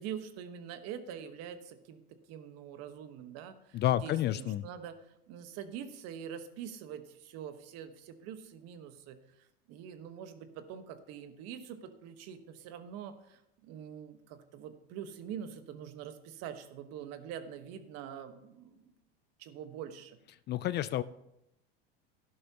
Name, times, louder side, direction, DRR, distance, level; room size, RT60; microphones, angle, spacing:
voice 1, 0.0-4.9 5.3-18.9 19.4-20.2, right 8 dB, 55° right, 9 dB, 1.3 m, -45 dB
voice 2, 3.7-4.6 20.5-21.0, left 13 dB, 35° left, 16 dB, 0.4 m, -30 dB
12.5 x 11.0 x 2.9 m, 0.83 s
hypercardioid pair, 95°, 29 cm